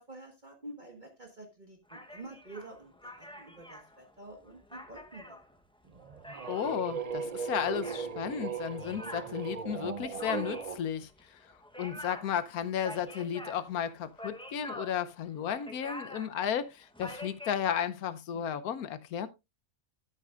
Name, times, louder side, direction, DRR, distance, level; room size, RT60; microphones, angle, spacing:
voice 1, 0.0-5.4 18.3-18.5, right 2 dB, 35° right, 1.6 m, -49 dB
sound 1, 1.9-6.8 7.5-17.9, left 1 dB, 5° left, 0.7 m, -46 dB
sound 2, 5.9-10.8, right 6 dB, 50° right, 0.4 m, -38 dB
voice 2, 6.5-11.5 11.8-19.3, left 9 dB, 80° left, 1.3 m, -34 dB
13.0 x 8.4 x 2.4 m
omnidirectional pair, 1.5 m